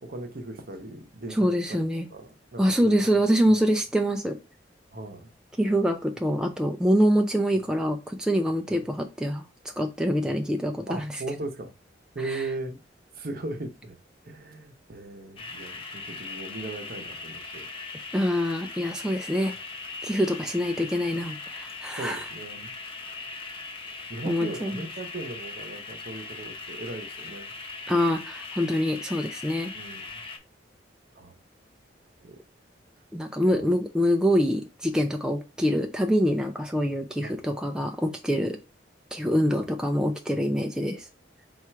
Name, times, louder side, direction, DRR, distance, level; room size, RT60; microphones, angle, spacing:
voice 1, 0.0-3.2 3.5-3.6 4.9-5.3 8.7-8.8 10.9-11.7 12.1-12.8 13.2-14.0 14.2-17.7 19.0-19.2 21.9-22.7 24.1-27.5 29.7-30.2 31.1-31.4 32.2-32.4 33.5-33.7 37.2-37.4 39.5-39.7, right 2 dB, 55° right, 0.8 m, -38 dB
voice 2, 1.3-2.1 2.6-4.4 5.6-9.5 9.8-11.2 12.2-12.5 18.1-19.5 20.0-22.3 24.3-24.8 27.9-29.7 33.1-38.6 39.1-41.1, equal, 5° right, 0.3 m, -25 dB
sound 1, 15.4-30.4, left 3 dB, 30° left, 0.7 m, -40 dB
4.3 x 2.4 x 4.4 m
head